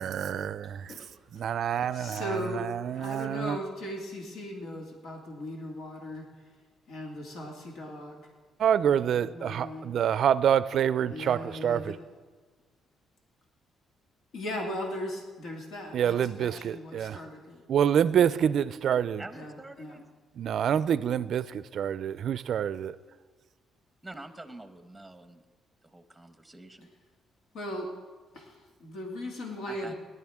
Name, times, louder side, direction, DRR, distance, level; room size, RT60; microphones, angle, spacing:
voice 1, 0.0-0.9 1.4-3.6 8.6-11.9 15.9-17.2 17.7-19.2 20.4-23.0, right 9 dB, 65° right, 0.4 m, -27 dB
voice 2, 1.9-2.7 2.9-6.3 6.9-8.2 8.8-10.0 11.1-12.0 14.3-17.6 19.3-20.0 27.5-27.9 28.3-29.9, left 1 dB, 80° left, 2.0 m, -38 dB
voice 3, 19.2-20.0 24.0-25.4 25.9-26.9 29.7-29.9, right 2 dB, 5° right, 0.9 m, -46 dB
18.5 x 11.0 x 3.6 m
cardioid pair, 90°, 0 cm